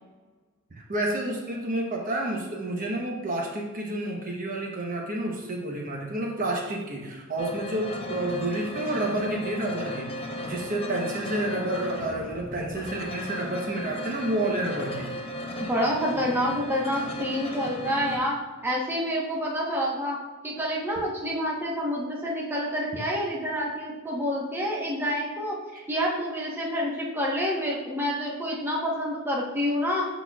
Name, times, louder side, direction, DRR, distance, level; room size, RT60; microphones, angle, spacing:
voice 1, 0.8-15.1 25.7-25.8, right 1 dB, 40° right, -1 dB, 0.9 m, -30 dB
sound 1, 7.4-18.2, equal, 30° left, 0.7 m, -36 dB
voice 2, 15.6-18.3 18.6-20.2 20.4-25.5 25.9-30.1, equal, 10° right, -4 dB, 1.1 m, -28 dB
12.0 x 4.1 x 2.4 m, 1.3 s
head